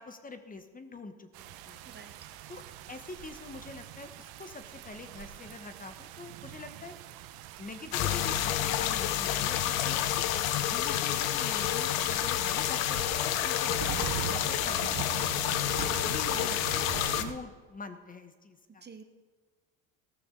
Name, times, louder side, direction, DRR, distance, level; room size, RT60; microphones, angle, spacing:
voice 1, 0.0-1.8 2.5-2.6 2.9-7.0 7.6-10.0 10.6-15.7 16.0-16.9 17.2-18.8, left 3 dB, 20° left, 8 dB, 1.2 m, -45 dB
sound 1, 1.3-17.3, right 12 dB, 65° right, 1.0 m, -43 dB
sound 2, 7.9-17.2, left 12 dB, 80° left, 0.9 m, -29 dB
Bowed string instrument, 8.0-13.6, left 9 dB, 65° left, 1.3 m, -43 dB
voice 2, 15.8-16.1 18.8-19.0, right 5 dB, 25° right, 7 dB, 1.2 m, -49 dB
15.5 x 13.5 x 3.9 m, 1.4 s
hypercardioid pair, 85°, 40 cm